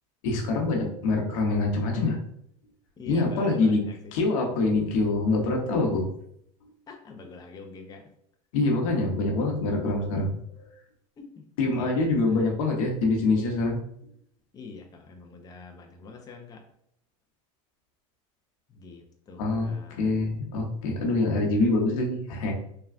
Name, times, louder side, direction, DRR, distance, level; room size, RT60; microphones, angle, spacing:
voice 1, 0.2-2.2 3.1-3.8 4.1-6.1 8.5-10.7 11.6-13.8 19.4-19.7 20.0-22.5, left 3 dB, 80° left, 0 dB, 0.8 m, -25 dB
voice 2, 3.0-4.1 6.9-8.1 11.2-12.4 14.5-16.6 18.7-20.1, left 4 dB, 20° left, 2 dB, 0.4 m, -45 dB
3.4 x 2.3 x 2.3 m, 0.70 s
supercardioid pair, 105°, 17 cm